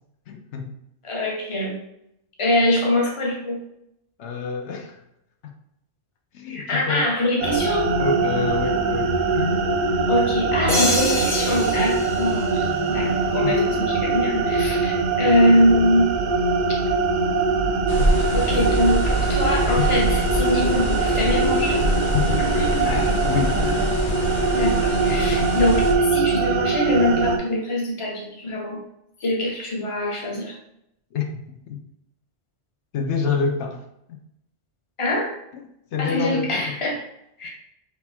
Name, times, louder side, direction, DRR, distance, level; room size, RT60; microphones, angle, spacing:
voice 1, 0.3-0.7 4.2-5.0 5.4-5.5 6.3-7.1 8.0-9.5 13.4-13.6 15.2-15.6 22.9-23.6 31.1-31.3 31.7-31.8 32.9-33.8 35.9-36.8, left 5 dB, 75° left, 3 dB, 1.0 m, -27 dB
voice 2, 1.0-1.8 2.4-3.6 6.4-7.9 10.1-16.2 18.3-21.8 22.4-22.9 24.5-28.8 29.2-30.5 35.0-35.3 36.0-37.0 37.4-37.5, left 1 dB, 30° left, -1 dB, 0.9 m, -23 dB
sound 1, 7.4-27.4, right 3 dB, 50° right, 0.6 m, -22 dB
sound 2, 10.7-13.4, left 1 dB, 5° left, 1.0 m, -27 dB
sound 3, 17.9-25.9, left 1 dB, 55° left, 0.7 m, -25 dB
3.6 x 3.0 x 4.3 m, 0.79 s
omnidirectional pair, 1.2 m